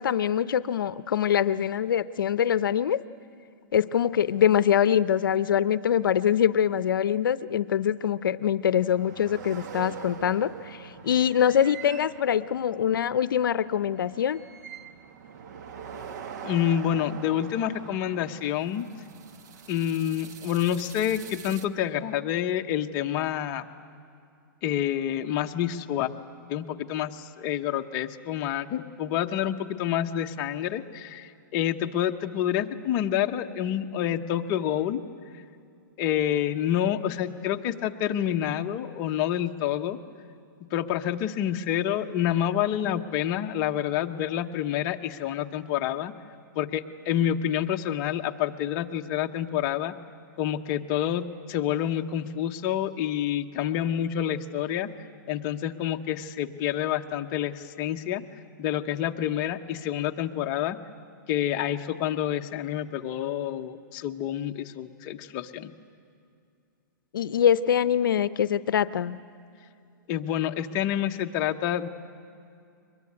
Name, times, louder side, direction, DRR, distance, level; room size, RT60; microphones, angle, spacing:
voice 1, 0.0-3.0 3.7-14.4 67.1-69.2, left 9 dB, 80° left, 15 dB, 0.6 m, -24 dB
sound 1, 8.8-21.7, right 7 dB, 55° right, 1.3 m, -43 dB
voice 2, 16.4-18.8 19.7-23.7 24.6-26.1 26.5-35.0 36.0-40.0 40.7-46.1 46.5-49.9 50.4-54.9 55.3-58.2 58.6-60.8 61.3-65.7 70.1-71.9, left 10 dB, 30° left, 6 dB, 1.0 m, -28 dB
23.0 x 21.5 x 9.7 m, 2.4 s
hypercardioid pair, 155°, 11 cm